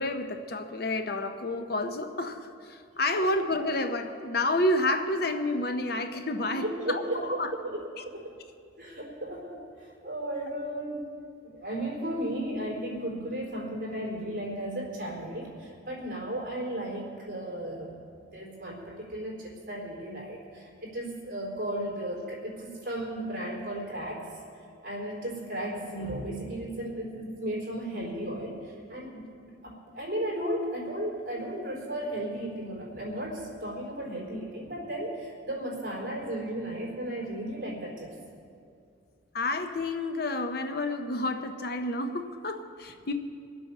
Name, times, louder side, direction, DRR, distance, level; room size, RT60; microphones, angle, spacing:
voice 1, 0.0-7.5 8.0-8.1 39.3-43.1, left 2 dB, 50° left, 7 dB, 0.8 m, -30 dB
voice 2, 6.4-8.3 8.8-11.1 11.4-17.9 18.3-24.3 24.8-38.1, right 1 dB, 45° right, -2 dB, 4.0 m, -35 dB
23.5 x 7.8 x 6.7 m, 2.4 s
head